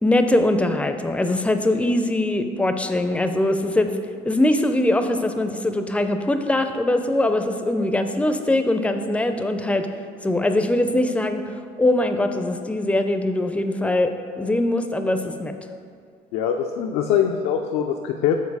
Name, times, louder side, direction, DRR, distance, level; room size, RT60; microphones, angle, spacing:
voice 1, 0.0-4.0 4.2-9.9 10.2-11.4 11.8-15.6, left 1 dB, 10° left, 7 dB, 0.5 m, -22 dB
voice 2, 16.3-18.4, left 8 dB, 80° left, 3 dB, 0.4 m, -22 dB
7.4 x 3.9 x 4.7 m, 2.2 s
supercardioid pair, 90°, 16 cm